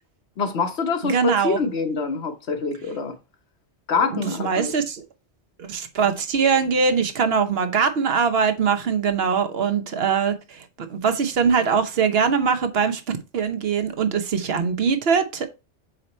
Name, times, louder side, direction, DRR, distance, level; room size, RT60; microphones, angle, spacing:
voice 1, 0.4-1.2 1.4-3.1 3.9-4.7, left 4 dB, 70° left, 1.3 m, -25 dB
voice 2, 1.0-1.6 4.1-5.0 5.6-13.0 13.3-15.5, right 6 dB, 60° right, 1.1 m, -22 dB
8.0 x 2.9 x 4.2 m
omnidirectional pair, 1.2 m